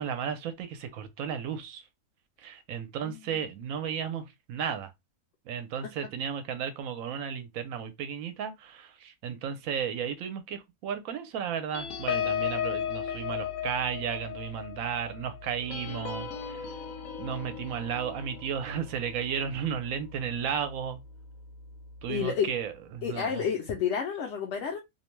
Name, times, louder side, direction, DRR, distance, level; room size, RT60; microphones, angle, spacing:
voice 1, 0.0-1.8 2.4-4.9 5.5-16.7 17.2-21.0 22.0-23.5, right 8 dB, 80° right, 1.0 m, -34 dB
sound 1, 11.7-20.7 21.1-21.3 21.6-21.9, left 8 dB, 90° left, 1.0 m, -36 dB
voice 2, 22.1-22.5 23.0-24.8, left 7 dB, 65° left, 0.8 m, -30 dB
2.6 x 2.1 x 3.0 m
omnidirectional pair, 1.4 m